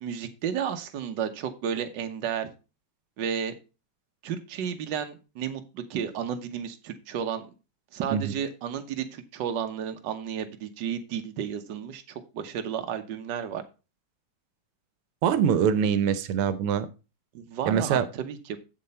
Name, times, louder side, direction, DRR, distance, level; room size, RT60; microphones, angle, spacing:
voice 1, 0.0-2.5 3.2-3.5 4.2-7.5 7.9-13.6 17.3-18.6, right 8 dB, 60° right, 7 dB, 1.6 m, -32 dB
voice 2, 15.2-16.9 17.7-18.0, right 8 dB, 90° right, 13 dB, 1.7 m, -24 dB
7.8 x 7.5 x 4.3 m, 0.31 s
omnidirectional pair, 2.4 m